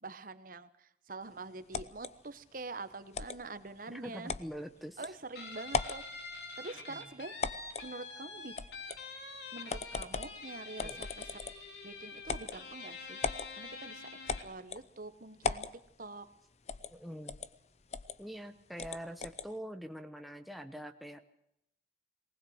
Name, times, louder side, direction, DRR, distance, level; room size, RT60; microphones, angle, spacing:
voice 1, 0.0-4.3 5.0-6.0 6.6-7.3 7.8-8.6 9.5-11.4 11.8-15.7 16.0-16.3, right 3 dB, 45° right, 12 dB, 1.0 m, -45 dB
sound 1, 1.7-2.1 3.1-3.4 4.3-4.5 5.0-5.1 5.7-6.0 7.4-7.9 8.6-9.0 9.7-10.4 10.8-11.7 12.3-12.6 13.2-13.5 14.3-14.9 15.4-15.7 16.7-16.9 17.3-17.5 17.9-18.2 18.8-19.5, left 4 dB, 35° left, 0.7 m, -37 dB
voice 2, 3.9-5.0 6.9-7.0 10.8-11.0 16.9-17.4 18.2-21.2, equal, ahead, 6 dB, 0.9 m, -44 dB
Guitar, 5.4-14.6, left 4 dB, 60° left, 3.8 m, -46 dB
20.0 x 19.0 x 7.9 m, 0.77 s
head